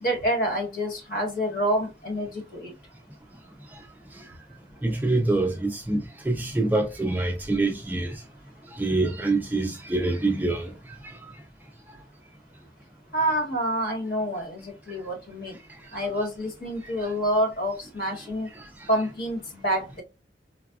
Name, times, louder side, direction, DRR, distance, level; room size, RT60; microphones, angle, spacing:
voice 1, 0.0-2.7 13.1-15.6 15.9-18.5 18.9-20.0, equal, 50° left, 1.3 m, -27 dB
voice 2, 4.8-8.2 8.8-10.7, right 2 dB, 10° right, 0.3 m, -25 dB
4.1 x 2.2 x 2.2 m
head